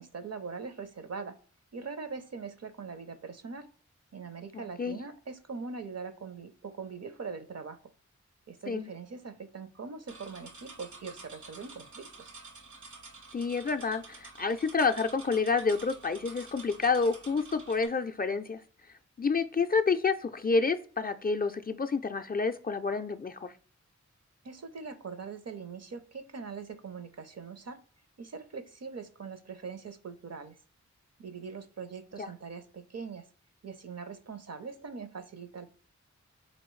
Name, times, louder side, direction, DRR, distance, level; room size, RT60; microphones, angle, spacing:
voice 1, 0.0-1.4 1.7-3.7 4.1-7.8 8.5-12.3 24.4-27.8 28.2-30.6 31.2-33.3 33.6-35.7, right 5 dB, 55° right, 9 dB, 0.6 m, -42 dB
voice 2, 4.5-5.0 8.7-8.9 13.3-18.6 19.2-23.5 32.2-32.3, left 4 dB, 30° left, 6 dB, 0.4 m, -29 dB
sound 1, 10.1-17.9, right 3 dB, 80° right, 1.0 m, -50 dB
4.2 x 3.1 x 3.1 m, 0.41 s
wide cardioid pair, 55°, 30 cm